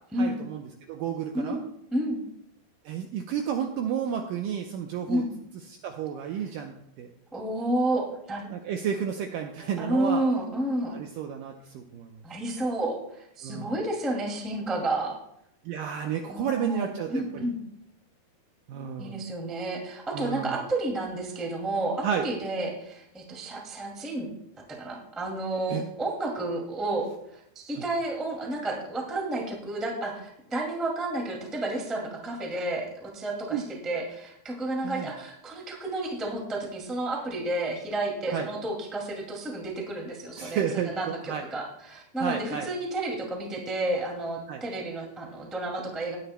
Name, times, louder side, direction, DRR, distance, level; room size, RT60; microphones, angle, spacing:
voice 1, 0.2-1.6 2.9-5.2 5.8-7.1 8.5-10.2 10.9-12.2 13.4-13.8 15.7-17.5 18.7-19.2 20.1-20.6 22.0-22.3 25.7-25.8 33.5-33.6 34.8-35.1 38.3-38.5 40.4-41.4 42.2-42.7 44.5-44.6, right 8 dB, 85° right, 3 dB, 2.0 m, -31 dB
voice 2, 1.9-2.2 5.1-5.3 7.3-8.5 9.8-11.0 12.2-15.2 16.3-17.6 19.0-24.3 24.7-46.2, right 1 dB, ahead, -1 dB, 0.4 m, -31 dB
19.0 x 10.0 x 2.2 m, 0.77 s
omnidirectional pair, 4.7 m